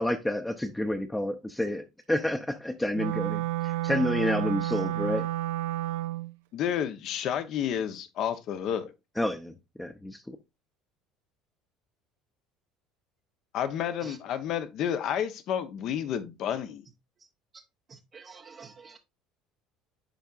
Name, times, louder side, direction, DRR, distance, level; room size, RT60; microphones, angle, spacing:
voice 1, 0.0-5.3 9.2-10.4, left 1 dB, 10° left, 0.7 m, -29 dB
Wind instrument woodwind instrument, 2.9-6.3, right 17 dB, 75° right, 0.3 m, -30 dB
voice 2, 6.5-8.9 13.5-16.8, left 9 dB, 55° left, 0.9 m, -30 dB
voice 3, 17.9-19.0, right 5 dB, 40° right, 0.7 m, -48 dB
10.0 x 4.5 x 2.5 m
hypercardioid pair, 70°, 0 cm